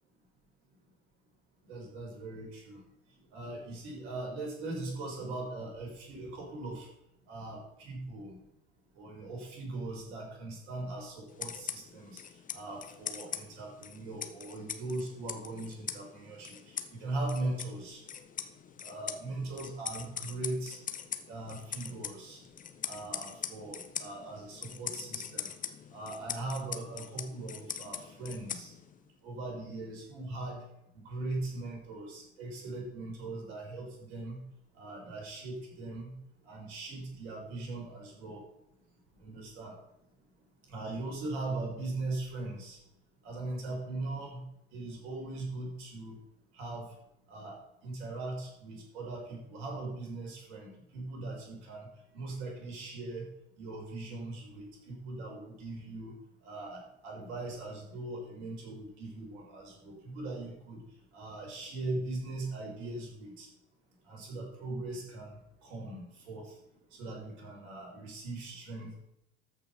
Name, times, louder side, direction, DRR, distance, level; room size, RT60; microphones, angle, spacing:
voice 1, 1.7-2.8 3.3-6.9 7.3-8.4 9.0-12.2 12.5-18.0 18.8-20.8 21.3-22.4 22.8-25.5 25.9-28.7 29.2-30.6 31.0-34.4 34.8-36.1 36.5-38.4 39.2-39.7 40.7-42.8 43.2-44.4 44.7-46.2 46.5-46.9 47.3-51.9 52.1-53.2 53.6-56.1 56.4-60.8 61.1-63.5 64.1-65.3 65.6-66.5 66.9-69.0, right 2 dB, 60° right, -1 dB, 5.2 m, -40 dB
sound 1, 11.3-29.1, left 8 dB, 20° left, 1.0 m, -42 dB
13.5 x 6.0 x 5.3 m, 0.80 s
figure-of-eight pair, 75°, 35 cm